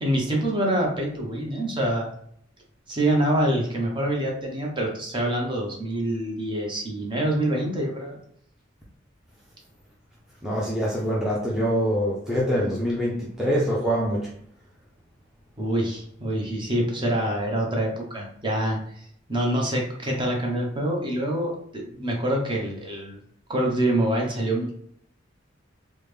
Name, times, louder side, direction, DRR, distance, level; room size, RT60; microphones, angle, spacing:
voice 1, 0.0-2.1 2.9-8.2 15.6-18.8 19.3-23.2 23.5-24.7, right 1 dB, 25° right, 0.8 m, -25 dB
voice 2, 10.4-14.3, equal, 5° right, 0.5 m, -24 dB
3.4 x 2.2 x 3.2 m
head